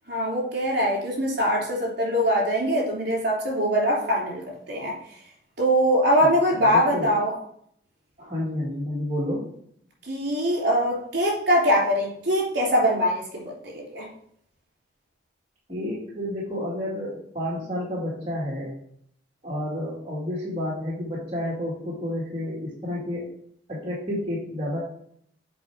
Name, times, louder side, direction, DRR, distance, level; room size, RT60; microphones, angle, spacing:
voice 1, 0.1-5.0 5.6-7.4 10.1-14.1, equal, 60° right, -2 dB, 3.4 m, -23 dB
voice 2, 6.2-7.1 8.2-9.5 15.7-18.8 19.4-23.3 23.7-24.8, left 1 dB, 30° right, -6 dB, 1.9 m, -30 dB
7.8 x 4.6 x 4.6 m, 0.66 s
head